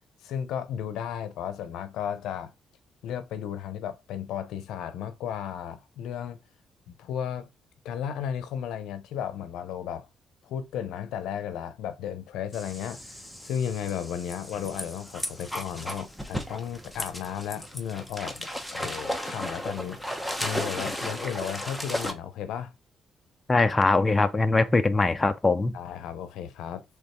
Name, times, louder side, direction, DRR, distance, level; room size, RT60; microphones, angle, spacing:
voice 1, 0.2-2.5 3.0-6.4 7.0-7.5 7.8-10.1 10.4-22.7 25.7-26.8, left 9 dB, 90° left, 0.7 m, -34 dB
sound 1, 12.5-22.1, equal, 5° left, 1.0 m, -35 dB
voice 2, 23.5-25.7, left 3 dB, 25° left, 0.6 m, -22 dB
3.6 x 3.2 x 4.3 m
cardioid pair, 80°, 0 cm